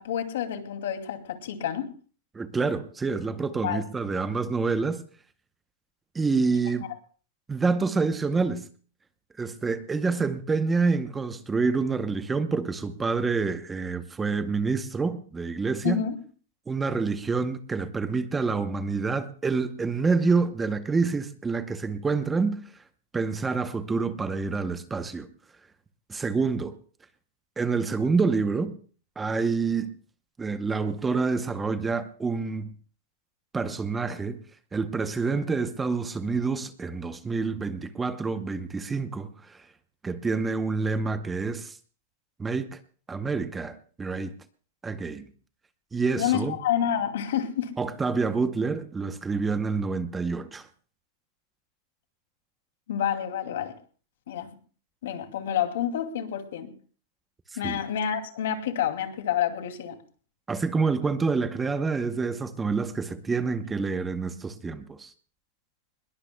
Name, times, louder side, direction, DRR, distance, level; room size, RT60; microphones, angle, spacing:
voice 1, 0.0-1.9 3.6-3.8 6.8-6.9 15.8-16.2 46.2-47.7 52.9-53.7 54.3-54.5 55.0-56.7 57.6-60.0, left 9 dB, 70° left, 2.5 m, -28 dB
voice 2, 2.3-5.0 6.1-6.9 7.5-8.7 9.4-16.0 16.7-22.6 23.1-25.3 26.1-26.7 27.6-28.7 29.2-29.9 30.4-32.7 33.5-34.4 34.7-39.6 40.0-41.8 42.4-42.8 43.1-44.3 44.8-45.2 45.9-46.5 47.8-50.7 57.6-57.8 60.5-65.1, right 4 dB, 10° right, 0.8 m, -27 dB
21.0 x 21.0 x 2.2 m
supercardioid pair, 155°, 0 cm